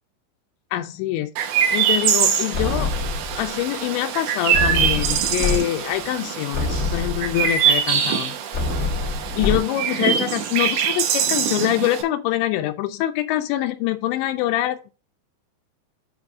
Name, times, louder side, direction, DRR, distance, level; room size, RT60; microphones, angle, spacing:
voice 1, 0.7-2.9 3.4-8.4 8.8-9.0 9.4-14.9, left 14 dB, 85° left, 5 dB, 2.9 m, -25 dB
Chirp tweet, 1.4-12.0, right 8 dB, 85° right, 3.4 m, -23 dB
sound 1, 2.5-3.5 4.5-5.6 6.0-6.1 6.5-7.5 8.5-9.6, left 3 dB, 30° left, 1.2 m, -25 dB
8.1 x 3.5 x 5.9 m, 0.32 s
omnidirectional pair, 5.2 m